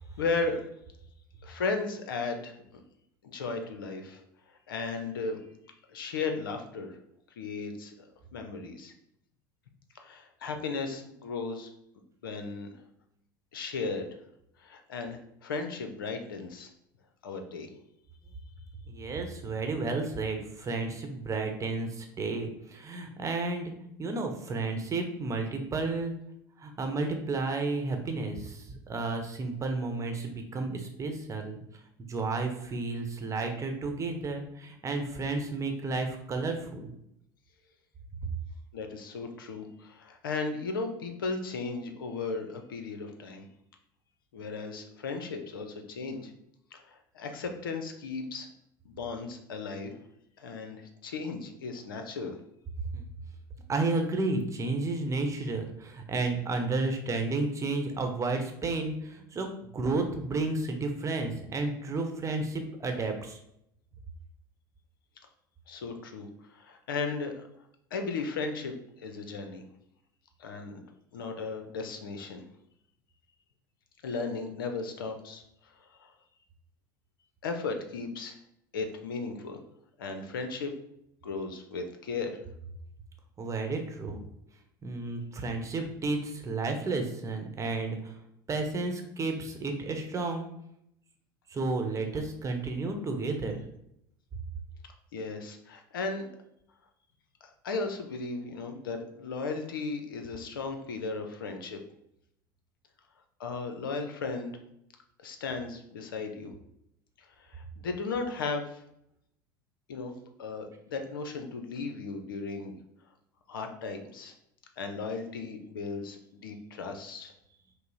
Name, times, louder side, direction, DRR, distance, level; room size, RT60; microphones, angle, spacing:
voice 1, 0.2-0.7 1.4-2.8 3.2-4.2 4.5-5.4 5.9-7.0 7.4-8.1 8.3-8.9 9.9-11.7 12.2-12.8 13.5-14.1 14.6-16.7 17.2-17.7 38.7-43.4 44.3-46.3 46.7-48.5 48.8-49.9 50.4-52.4 65.7-67.4 67.9-69.6 70.4-70.8 71.1-72.4 74.0-76.1 77.4-78.4 78.7-79.6 80.0-80.7 81.2-82.4 95.1-96.3 97.4-101.8 103.4-104.5 105.2-106.5 107.4-108.8 109.9-110.1 110.4-112.7 113.5-114.3 114.8-117.3, left 4 dB, 80° left, 6 dB, 0.6 m, -36 dB
voice 2, 18.9-23.7 24.0-26.1 26.6-31.6 32.1-36.9 52.9-53.0 53.7-63.4 83.4-84.2 84.8-88.1 88.5-90.5 91.5-93.6, right 3 dB, 25° right, 4 dB, 0.9 m, -32 dB
5.4 x 2.0 x 4.0 m, 0.76 s
hypercardioid pair, 75°, 11 cm